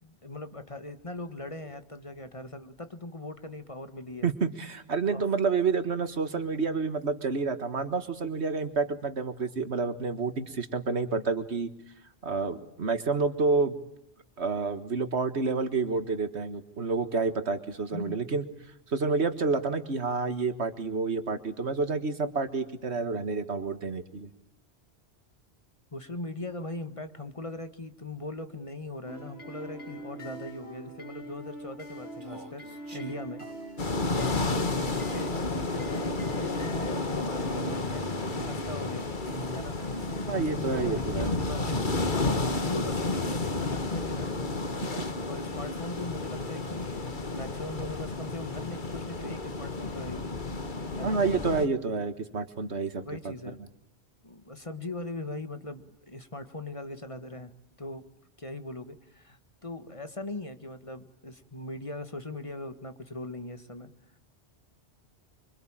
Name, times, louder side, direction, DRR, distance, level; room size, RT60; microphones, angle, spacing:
voice 1, 0.0-4.3 5.1-5.2 17.9-18.2 25.9-32.6 32.9-33.5 33.8-39.1 39.5-50.3 51.0-51.2 53.0-53.6 54.2-57.5 57.8-58.0 58.4-63.9, left 2 dB, 30° left, 9 dB, 1.8 m, -40 dB
voice 2, 4.2-11.7 12.2-13.8 14.4-18.4 18.9-24.3 40.2-41.3 51.0-53.3, right 4 dB, 80° right, 11 dB, 2.0 m, -29 dB
sound 1, 29.1-43.3, equal, 65° left, 4.0 m, -43 dB
Human voice, 32.2-33.2 34.8-35.4, right 2 dB, 50° right, 2.7 m, -48 dB
sound 2, 33.8-51.7, left 3 dB, 45° left, 1.9 m, -31 dB
25.5 x 25.5 x 9.0 m, 0.74 s
omnidirectional pair, 1.1 m